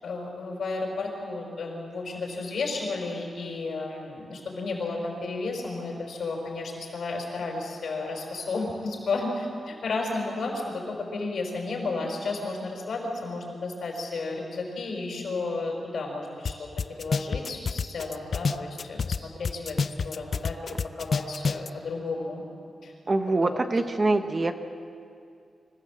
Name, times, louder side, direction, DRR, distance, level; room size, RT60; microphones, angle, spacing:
voice 1, 0.0-16.7 17.0-19.8 20.0-22.4 22.8-22.9 23.4-23.6, left 3 dB, 65° left, 0 dB, 5.5 m, -32 dB
sound 1, 16.5-16.6 16.8-19.2 19.5-21.7, left 5 dB, 45° left, 0.5 m, -27 dB
voice 2, 23.1-24.5, right 2 dB, 25° right, 7 dB, 0.9 m, -24 dB
25.5 x 15.5 x 7.8 m, 2.4 s
wide cardioid pair, 170°, 0 cm